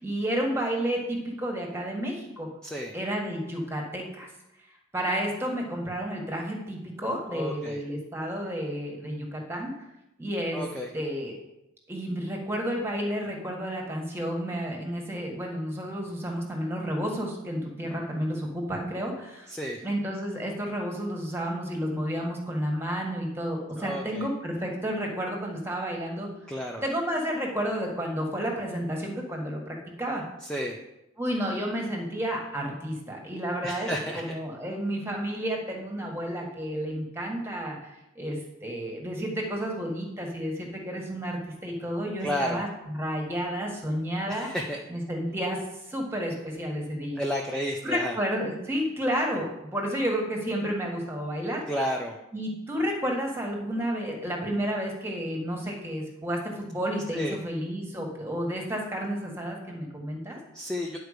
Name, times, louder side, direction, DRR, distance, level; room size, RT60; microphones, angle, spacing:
voice 1, 0.0-2.5 2.9-4.3 4.9-9.7 10.2-10.6 10.9-11.4 11.9-19.5 19.8-26.3 26.8-30.2 31.2-33.9 34.1-44.5 44.9-45.6 45.9-47.2 47.8-51.6 52.3-60.4, equal, 10° right, 0 dB, 1.6 m, -31 dB
voice 2, 2.6-2.9 7.3-7.8 10.5-10.9 19.5-19.8 23.8-24.3 26.5-26.8 30.4-30.8 33.6-34.4 42.2-42.6 44.3-44.8 47.2-48.2 51.7-52.2 57.1-57.4 60.5-61.0, equal, 5° left, -1 dB, 0.6 m, -32 dB
10.0 x 4.6 x 6.6 m, 0.91 s
head